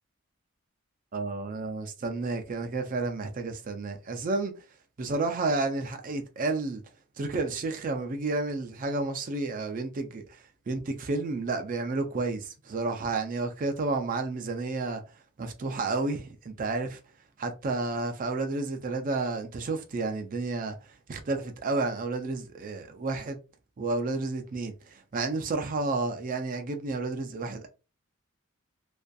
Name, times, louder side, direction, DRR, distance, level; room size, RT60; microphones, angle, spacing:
voice 1, 1.1-4.6 5.0-6.8 7.2-15.0 15.4-17.0 17.4-23.4 23.8-27.7, right 3 dB, 40° right, 0.4 m, -31 dB
2.5 x 2.3 x 2.2 m
head